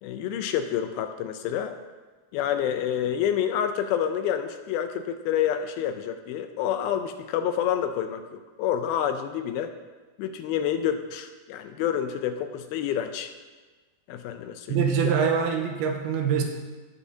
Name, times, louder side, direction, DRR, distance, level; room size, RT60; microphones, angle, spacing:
voice 1, 0.0-1.8 2.3-9.7 10.2-13.3 14.1-14.8, left 9 dB, 80° left, 8 dB, 2.3 m, -28 dB
voice 2, 14.7-16.4, right 7 dB, 80° right, 2 dB, 2.8 m, -24 dB
16.5 x 7.1 x 2.7 m, 1.3 s
omnidirectional pair, 4.5 m